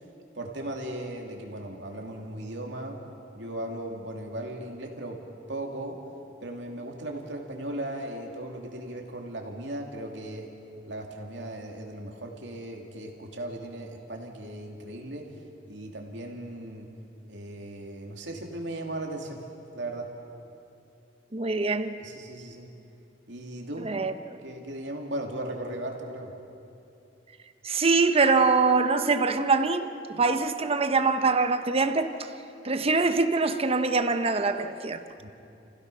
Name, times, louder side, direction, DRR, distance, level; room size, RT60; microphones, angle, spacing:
voice 1, 0.3-3.0 3.3-5.2 5.5-6.0 6.4-10.5 10.9-15.3 15.7-16.9 17.3-19.4 19.7-20.1 22.0-22.7 23.3-24.0 24.4-26.3 35.2-35.3, right 1 dB, 85° right, 1 dB, 2.7 m, -37 dB
voice 2, 21.3-21.9 23.8-24.4 27.6-29.9 30.2-32.3 32.6-35.0, right 4 dB, 35° right, 8 dB, 1.0 m, -24 dB
30.0 x 16.5 x 5.6 m, 2.8 s
head